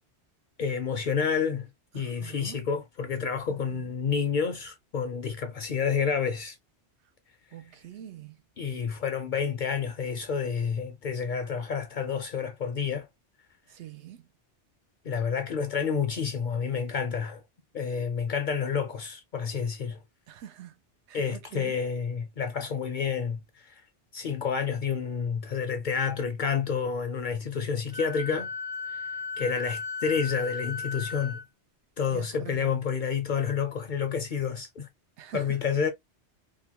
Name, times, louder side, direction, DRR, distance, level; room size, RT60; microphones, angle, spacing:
voice 1, 0.6-1.7 1.9-6.6 8.6-13.1 15.0-17.4 17.7-20.0 21.1-23.7 24.1-28.5 28.9-29.1 29.4-31.4 32.0-34.9 35.3-35.9, left 6 dB, 55° left, 0.6 m, -29 dB
voice 2, 1.9-2.7 3.5-3.8 7.5-8.4 13.7-14.3 20.3-20.8 21.1-21.8 32.1-32.8 35.2-35.6, right 11 dB, 80° right, 0.9 m, -44 dB
Wind instrument woodwind instrument, 27.9-31.4, left 5 dB, 40° right, 0.5 m, -35 dB
2.9 x 2.1 x 2.8 m
omnidirectional pair, 1.2 m